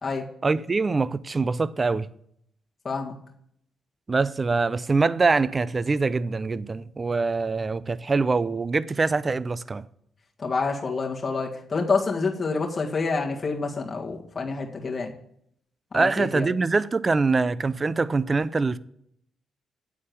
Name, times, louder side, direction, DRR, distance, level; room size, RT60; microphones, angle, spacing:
voice 1, 0.4-2.1 4.1-9.9 15.9-18.8, right 4 dB, 35° right, 0.4 m, -24 dB
voice 2, 2.8-3.2 10.4-15.1 15.9-16.5, left 4 dB, 35° left, 1.8 m, -27 dB
9.4 x 4.3 x 6.9 m
supercardioid pair, 65°, 0 cm